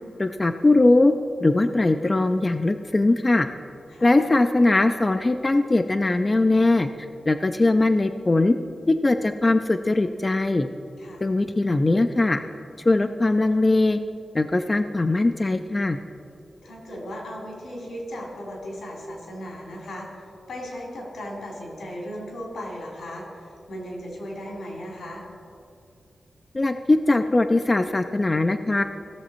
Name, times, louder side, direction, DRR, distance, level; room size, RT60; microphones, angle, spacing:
voice 1, 0.2-1.1 1.4-3.5 4.0-6.9 7.3-8.6 8.9-10.7 11.2-12.4 12.9-14.0 14.3-16.0 26.5-28.8, left 2 dB, 25° left, 8 dB, 0.3 m, -20 dB
voice 2, 16.6-25.2, equal, 90° left, -2 dB, 3.2 m, -37 dB
16.5 x 6.9 x 4.3 m, 2.5 s
wide cardioid pair, 150°, 0 cm